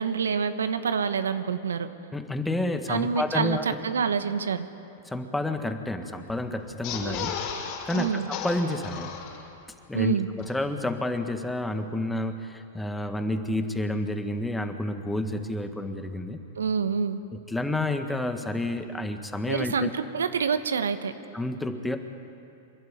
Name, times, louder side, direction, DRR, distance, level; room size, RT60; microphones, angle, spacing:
voice 1, 0.0-1.9 2.9-4.7 7.9-8.3 9.9-10.3 16.5-17.2 19.5-21.1, right 6 dB, 85° right, 11 dB, 1.0 m, -27 dB
voice 2, 2.1-3.6 5.0-7.4 7.8-9.1 9.9-16.4 17.3-19.9 21.3-22.0, left 1 dB, 5° left, 7 dB, 1.6 m, -30 dB
sound 1, 6.7-9.7 10.1-10.2 10.4-10.5, left 7 dB, 45° left, 5.4 m, -34 dB
26.0 x 11.5 x 9.6 m, 2.7 s
hypercardioid pair, 105°, 0 cm